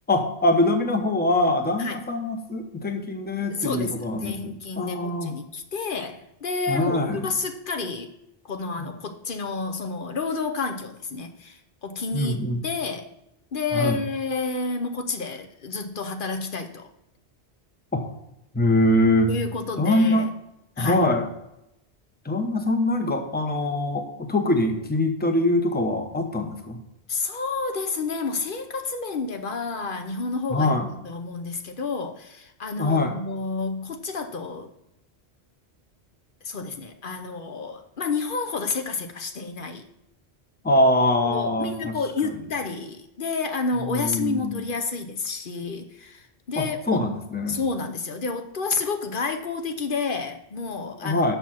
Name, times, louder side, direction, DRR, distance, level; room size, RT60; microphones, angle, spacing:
voice 1, 0.1-5.3 6.7-7.3 12.1-12.6 13.7-14.0 17.9-18.1 18.5-19.3 19.8-20.3 20.8-21.3 22.2-26.8 30.5-30.9 32.8-33.1 40.6-41.9 43.8-44.6 46.6-47.6 51.0-51.4, left 1 dB, 10° left, 5 dB, 0.8 m, -23 dB
voice 2, 3.5-8.1 8.5-13.1 13.5-16.9 19.3-20.3 20.8-21.1 27.1-34.7 36.4-39.8 41.2-47.0 47.5-51.3, left 4 dB, 55° left, 7 dB, 1.0 m, -30 dB
6.9 x 6.1 x 5.7 m, 0.86 s
omnidirectional pair, 1.1 m